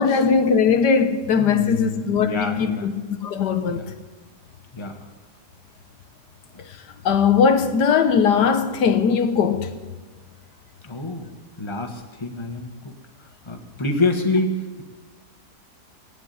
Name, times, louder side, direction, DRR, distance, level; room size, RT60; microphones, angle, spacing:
voice 1, 0.0-3.8 7.0-9.7, left 6 dB, 85° left, 1.6 m, -19 dB
voice 2, 1.4-2.9 3.7-3.8 4.7-5.0 10.8-11.3 11.6-12.9 13.5-14.8, left 2 dB, 20° left, 1.5 m, -27 dB
17.5 x 8.1 x 9.6 m
omnidirectional pair, 1.7 m